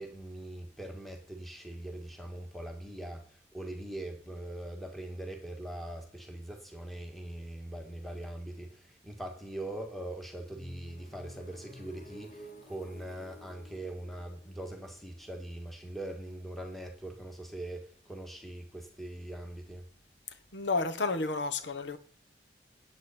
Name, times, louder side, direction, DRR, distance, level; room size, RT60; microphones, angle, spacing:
voice 1, 0.0-19.8, right 1 dB, ahead, 1.7 m, -42 dB
sound 1, 10.5-16.3, left 1 dB, 45° left, 1.6 m, -52 dB
voice 2, 20.5-22.0, left 3 dB, 90° left, 1.2 m, -31 dB
9.6 x 8.7 x 4.4 m
head